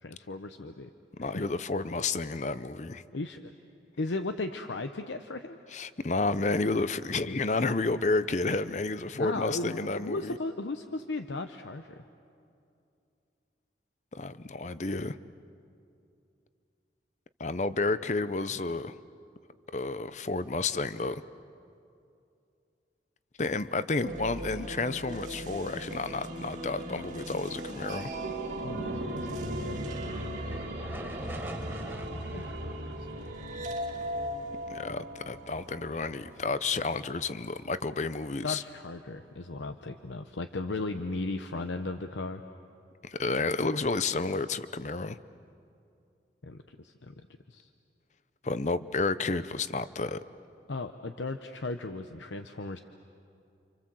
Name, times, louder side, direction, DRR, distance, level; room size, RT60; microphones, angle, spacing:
voice 1, 0.0-0.9 1.2-1.5 3.1-3.5 4.0-5.6 9.1-12.0 28.6-30.2 32.3-33.1 38.4-42.4 46.4-47.1 47.5-47.7 50.7-52.8, left 2 dB, 90° left, 7 dB, 0.9 m, -36 dB
voice 2, 1.2-3.0 5.7-10.4 14.1-15.2 17.4-18.9 19.7-21.2 23.4-28.1 34.7-38.6 43.0-45.2 48.4-50.2, left 3 dB, 40° left, 14 dB, 0.7 m, -31 dB
sound 1, 24.0-36.1, right 1 dB, 40° right, 2.0 m, -40 dB
sound 2, 28.1-37.5 37.8-37.9, right 1 dB, 85° right, 1.9 m, -40 dB
sound 3, 29.0-37.4, right 1 dB, 10° right, 1.0 m, -46 dB
30.0 x 26.5 x 7.6 m, 2.6 s
head